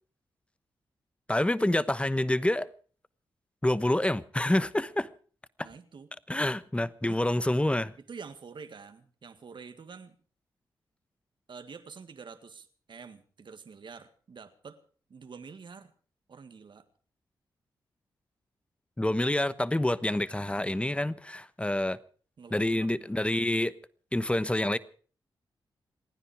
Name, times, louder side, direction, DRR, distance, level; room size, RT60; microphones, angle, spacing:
voice 1, 1.3-2.7 3.6-5.1 5.6-5.7 6.3-7.9 19.0-22.0 22.5-23.7 24.1-24.8, left 1 dB, 15° left, 1.0 m, -27 dB
voice 2, 5.6-6.1 7.1-7.2 8.1-10.2 11.5-14.8 15.1-15.9 16.3-16.9 22.4-23.1, right 5 dB, 65° right, 1.9 m, -47 dB
28.0 x 10.0 x 5.0 m
cardioid pair, 50°, 9 cm